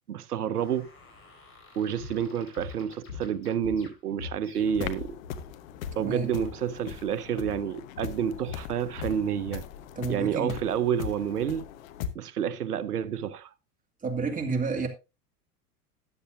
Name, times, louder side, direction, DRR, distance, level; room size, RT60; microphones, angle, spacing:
voice 1, 0.1-0.9 1.8-5.2 6.0-9.6 10.1-11.6 12.1-13.5, right 8 dB, 80° right, 0.8 m, -29 dB
sound 1, 0.5-5.0, left 3 dB, 25° left, 4.5 m, -55 dB
sound 2, 2.0-2.2 2.6-2.8 3.1-3.9 4.2-6.0 6.3-6.6 6.8-7.0 7.5-7.7 8.0-9.7, left 5 dB, 85° left, 1.7 m, -41 dB
sound 3, 4.6-12.1, left 10 dB, 60° left, 1.1 m, -40 dB
voice 2, 5.9-6.3 10.0-10.6 14.0-14.9, right 4 dB, 15° right, 2.2 m, -30 dB
13.5 x 9.7 x 2.5 m
figure-of-eight pair, 85°, 46 cm